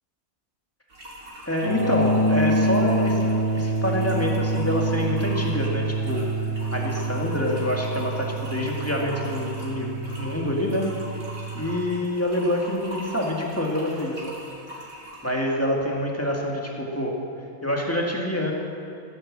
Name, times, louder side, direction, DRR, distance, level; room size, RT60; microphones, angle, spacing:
sound 1, 0.9-15.3, equal, 85° right, 3.6 m, -41 dB
voice 1, 1.5-6.2 6.7-10.9 11.5-14.4 15.2-17.2 17.6-18.5, left 1 dB, 10° left, -1 dB, 1.9 m, -26 dB
sound 2, 1.6-11.7, right 1 dB, 80° left, 4.1 m, -26 dB
15.0 x 10.5 x 7.5 m, 2.5 s
omnidirectional pair, 1.5 m